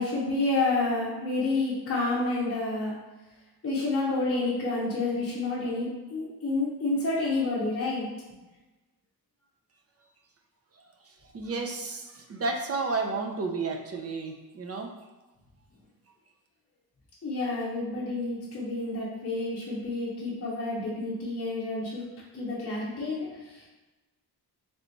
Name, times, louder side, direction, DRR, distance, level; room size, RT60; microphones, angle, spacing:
voice 1, 0.0-2.9 3.6-8.1 17.2-22.0 22.3-23.7, left 2 dB, 35° left, -7 dB, 0.7 m, -29 dB
voice 2, 11.3-14.9, right 3 dB, 40° right, 3 dB, 0.4 m, -32 dB
3.3 x 2.9 x 3.9 m, 1.1 s
wide cardioid pair, 175°, 40 cm